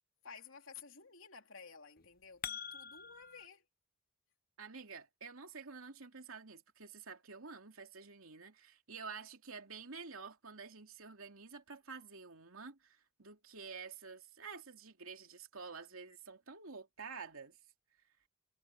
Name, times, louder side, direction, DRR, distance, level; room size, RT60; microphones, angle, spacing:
voice 1, 0.2-3.6, left 6 dB, 75° left, 3.1 m, -54 dB
sound 1, 2.0-3.5, left 8 dB, 45° left, 0.9 m, -45 dB
voice 2, 4.6-17.6, right 5 dB, 85° right, 2.8 m, -49 dB
head